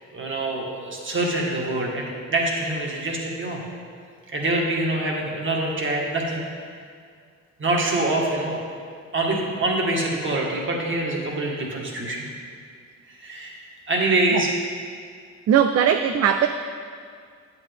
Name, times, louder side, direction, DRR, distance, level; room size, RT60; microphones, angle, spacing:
voice 1, 0.1-3.6 4.3-6.5 7.6-8.6 9.1-12.3 13.1-13.6 13.9-14.5, right 2 dB, 40° right, -1 dB, 1.8 m, -25 dB
voice 2, 15.5-16.5, right 8 dB, 55° right, 8 dB, 0.4 m, -19 dB
8.6 x 8.1 x 3.6 m, 2.2 s
cardioid pair, 90°, 30 cm